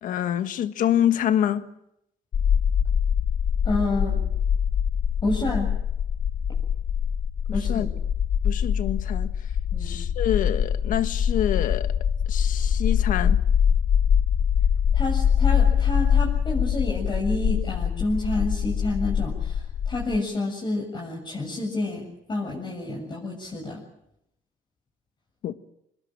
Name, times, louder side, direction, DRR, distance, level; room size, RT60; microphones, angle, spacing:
voice 1, 0.0-1.7 7.7-7.9 8.4-9.3 9.8-11.9 12.3-13.4 25.4-25.5, left 10 dB, 70° left, 1.6 m, -26 dB
sound 1, 2.3-20.2, left 8 dB, 50° left, 0.9 m, -23 dB
voice 2, 3.6-4.2 5.2-5.7 7.5-7.9 9.7-10.0 14.9-23.8, left 2 dB, 35° left, 7.7 m, -29 dB
26.0 x 21.5 x 7.6 m
cardioid pair, 105°, 14 cm